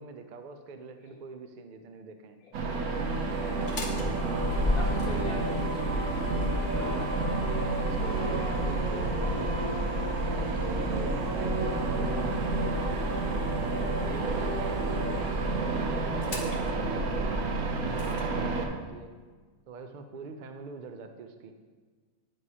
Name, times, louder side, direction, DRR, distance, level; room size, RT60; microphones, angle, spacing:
voice 1, 0.0-2.4 4.2-4.6 7.8-13.2 14.1-19.1 19.7-21.5, right 4 dB, 70° right, 6 dB, 0.4 m, -44 dB
voice 2, 2.4-2.9 3.3-3.8 4.4-7.1 14.1-14.4, left 2 dB, 75° left, -3 dB, 1.8 m, -42 dB
sound 1, 2.5-18.7, right 3 dB, 85° right, 1.2 m, -31 dB
sound 2, 2.6-17.3, right 1 dB, 40° right, 1.1 m, -38 dB
Motor vehicle (road), 3.5-18.2, left 2 dB, 40° left, 1.0 m, -35 dB
10.5 x 4.7 x 2.8 m, 1.4 s
omnidirectional pair, 1.5 m